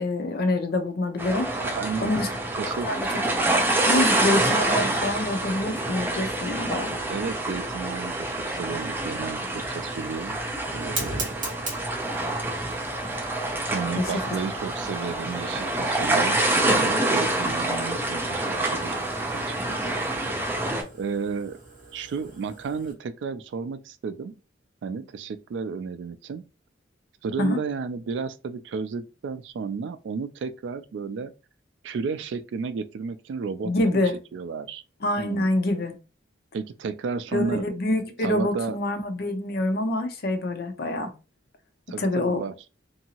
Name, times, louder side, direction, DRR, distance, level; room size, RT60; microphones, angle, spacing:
voice 1, 0.0-1.5 2.0-2.3 2.6-3.1 3.9-7.0 13.9-14.1 27.4-27.6 33.6-34.1 35.0-36.0 37.3-41.1 42.0-42.4, left 2 dB, 55° left, 0.5 m, -26 dB
sound 1, 1.2-20.8, right 2 dB, 10° right, 0.6 m, -26 dB
voice 2, 1.6-2.1 2.6-3.0 7.1-10.4 10.7-11.7 13.7-19.0 19.3-20.0 20.9-21.6 21.9-24.4 24.8-26.4 27.2-31.3 31.8-34.0 34.3-34.8 35.2-35.5 36.5-37.7 38.2-38.8 41.9-42.6, right 5 dB, 65° right, 0.3 m, -33 dB
Fire, 7.2-22.9, right 3 dB, 45° right, 1.2 m, -42 dB
2.8 x 2.6 x 2.8 m
head